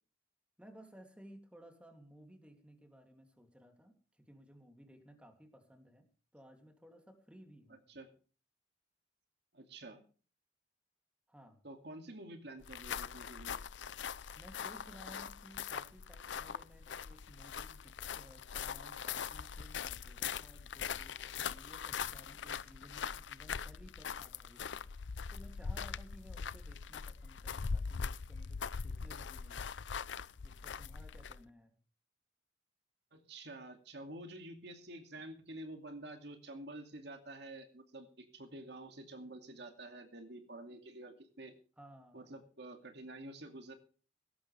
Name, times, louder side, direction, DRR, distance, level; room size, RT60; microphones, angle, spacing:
voice 1, 0.6-6.1 6.3-7.8 11.3-11.6 14.3-29.7 30.4-31.7 41.8-42.3, equal, 5° right, 5 dB, 2.8 m, -58 dB
voice 2, 9.5-10.0 11.6-13.6 33.1-41.5 42.1-43.7, right 1 dB, 65° right, 5 dB, 2.5 m, -49 dB
sound 1, 12.6-31.5, left 6 dB, 85° left, 0.6 m, -42 dB
17.5 x 14.0 x 3.4 m, 0.38 s
head